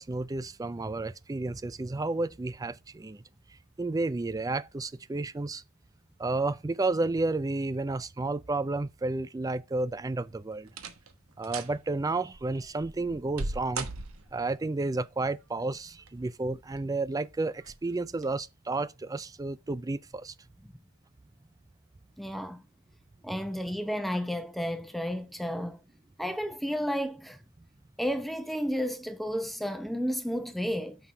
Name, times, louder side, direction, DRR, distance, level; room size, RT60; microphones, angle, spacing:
voice 1, 0.0-3.2 3.8-5.6 6.2-10.7 11.4-13.9 14.3-20.3, right 2 dB, 15° right, 0.3 m, -31 dB
sound 1, 9.7-10.2 10.7-11.1 11.4-11.8 12.3-14.5 15.7-16.3 16.8-16.9 17.6-17.8 18.2-18.3, right 3 dB, 85° right, 1.2 m, -38 dB
voice 2, 22.2-22.6 23.2-25.8 26.2-27.4 28.0-31.0, equal, ahead, 0.7 m, -32 dB
5.8 x 5.8 x 4.9 m
head